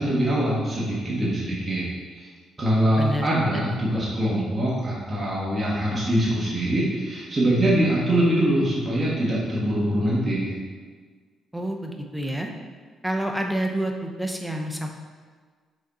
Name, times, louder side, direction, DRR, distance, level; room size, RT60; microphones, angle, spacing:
voice 1, 0.0-1.9 2.6-10.5, right 1 dB, 25° right, -6 dB, 1.7 m, -23 dB
voice 2, 11.5-12.5 13.0-14.9, equal, 5° right, 2 dB, 0.8 m, -28 dB
6.4 x 4.1 x 4.1 m, 1.5 s
cardioid pair, 90°, 0 cm